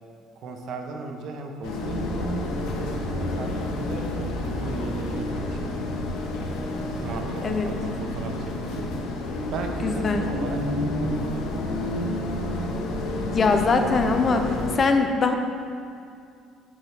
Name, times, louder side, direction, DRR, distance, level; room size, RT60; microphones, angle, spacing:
voice 1, 0.4-2.3 2.8-5.9 7.0-8.4 8.7-9.0 9.5-11.8, right 3 dB, 50° right, 3 dB, 0.8 m, -36 dB
sound 1, 1.6-14.8, left 1 dB, 70° left, 0.9 m, -29 dB
voice 2, 9.8-10.2 13.3-14.5 14.7-15.3, left 4 dB, 25° left, 6 dB, 0.4 m, -21 dB
6.2 x 5.8 x 6.0 m, 2.3 s
cardioid pair, 165°, 0 cm